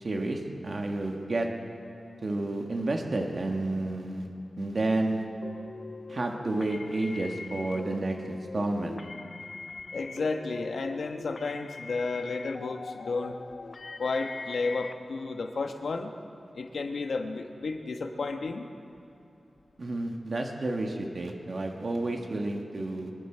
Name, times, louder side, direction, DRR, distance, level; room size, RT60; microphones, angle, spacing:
voice 1, 0.0-1.5 2.2-4.3 4.6-5.2 6.1-9.0 19.8-23.1, right 2 dB, 50° right, 2 dB, 1.4 m, -30 dB
sound 1, 5.4-14.9, left 4 dB, 55° left, 0.4 m, -42 dB
voice 2, 9.9-13.4 14.0-16.1 16.5-18.7, left 3 dB, 85° left, 5 dB, 1.1 m, -32 dB
24.0 x 11.0 x 4.5 m, 2.8 s
wide cardioid pair, 120°, 0 cm